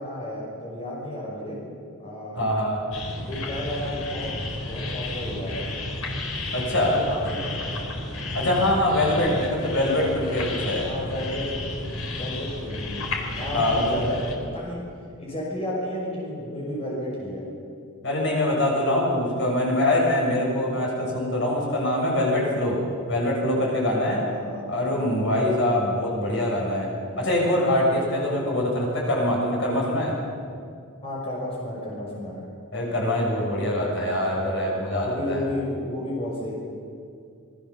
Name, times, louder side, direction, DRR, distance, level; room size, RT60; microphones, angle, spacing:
voice 1, 0.0-1.6 2.0-2.5 3.2-4.3 4.6-5.6 6.8-7.9 10.8-11.5 12.1-13.0 13.4-14.8 15.2-17.4 24.0-24.6 31.0-32.4 35.0-36.5, left 1 dB, 25° left, -4 dB, 6.0 m, -32 dB
voice 2, 2.4-2.8 6.5-7.0 8.3-10.9 13.5-14.0 18.0-22.8 23.1-24.2 24.7-26.9 27.2-30.1 32.7-35.4, left 1 dB, 55° left, -2 dB, 6.7 m, -24 dB
sound 1, 2.9-14.3, left 2 dB, 70° left, 4.0 m, -32 dB
27.0 x 20.5 x 7.2 m, 2.3 s
head